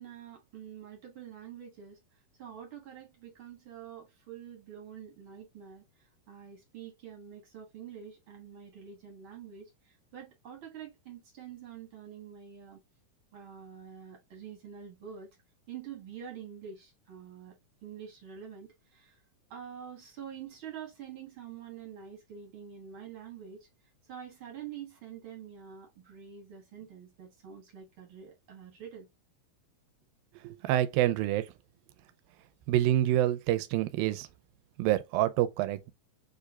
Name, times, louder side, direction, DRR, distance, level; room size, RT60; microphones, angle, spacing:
voice 1, 0.0-2.0 2.4-12.8 13.3-15.3 15.7-17.5 17.8-19.2 19.5-23.7 24.1-29.1, right 8 dB, 65° right, 1.2 m, -46 dB
voice 2, 30.4-31.5 32.7-34.3 34.8-35.9, right 13 dB, 85° right, 2.3 m, -27 dB
7.8 x 2.6 x 2.4 m
omnidirectional pair, 4.2 m